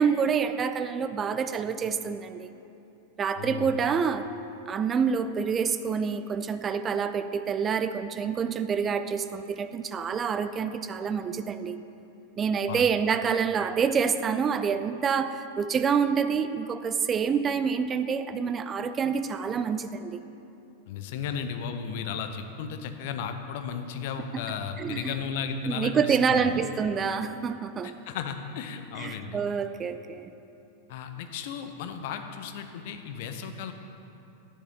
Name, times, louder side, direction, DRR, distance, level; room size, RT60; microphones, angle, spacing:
voice 1, 0.0-2.5 3.2-4.3 4.7-11.8 12.4-20.2 24.5-25.1 25.7-27.9 29.0-30.3, right 6 dB, 25° right, 11 dB, 0.3 m, -27 dB
voice 2, 3.4-3.7 12.7-12.8 20.9-26.6 27.8-29.4 30.9-33.7, left 6 dB, 50° left, 7 dB, 0.6 m, -35 dB
10.0 x 7.5 x 3.7 m, 2.8 s
figure-of-eight pair, 90°, 0 cm